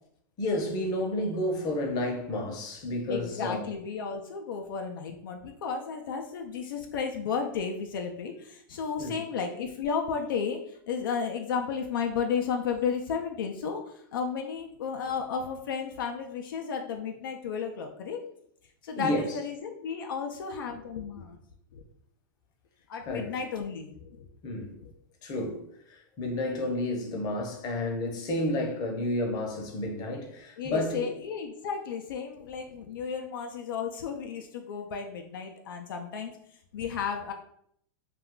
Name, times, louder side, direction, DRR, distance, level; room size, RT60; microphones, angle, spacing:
voice 1, 0.4-3.6 9.0-9.2 19.0-19.3 23.1-23.4 24.4-24.7 25.2-31.1, left 1 dB, 35° left, 0.7 m, -31 dB
voice 2, 3.1-18.2 18.8-21.4 21.7-21.8 22.9-24.3 24.8-24.9 30.6-36.4 36.7-37.3, left 6 dB, 80° left, 0.4 m, -33 dB
2.4 x 2.2 x 3.6 m
hypercardioid pair, 125°, 11 cm